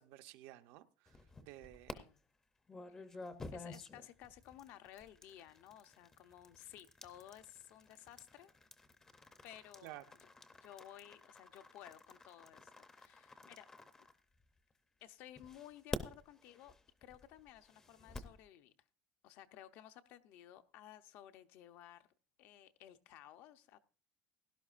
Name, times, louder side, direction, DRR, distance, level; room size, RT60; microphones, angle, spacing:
voice 1, 0.0-2.0 9.8-10.0, right 16 dB, 70° right, 0.7 m, -54 dB
sound 1, 1.1-1.9 2.7-14.7 15.4-18.4, left 3 dB, 15° left, 0.6 m, -51 dB
voice 2, 3.5-8.5 9.4-10.3 10.6-13.7 14.0-14.1 15.0-18.7 19.2-22.1 22.4-23.8, left 12 dB, 55° left, 0.7 m, -56 dB
17.0 x 11.5 x 2.5 m
cardioid pair, 180°, 4 cm